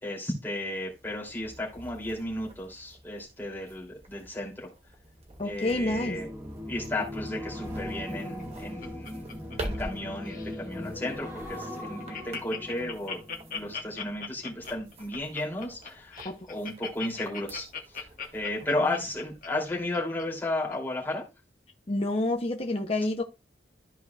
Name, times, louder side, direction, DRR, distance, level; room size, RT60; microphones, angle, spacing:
voice 1, 0.0-4.7 5.4-6.3 6.7-9.2 9.6-13.2 13.5-16.2 16.5-18.1 18.3-21.2, left 1 dB, 10° left, -3 dB, 2.8 m, -34 dB
sound 1, 0.9-20.0, right 1 dB, 35° right, 1.8 m, -47 dB
sound 2, 5.2-14.6 14.9-15.2, left 1 dB, 15° right, 1.3 m, -40 dB
voice 2, 5.4-6.2 16.2-16.3 21.9-23.2, left 2 dB, 35° left, 3 dB, 0.7 m, -28 dB
Laughter, 8.2-10.0 10.2-10.6 11.1-11.2 11.5-11.6 11.8-20.2 20.7-20.8, left 6 dB, 50° left, 1.3 m, -39 dB
14.0 x 4.7 x 2.3 m, 0.26 s
head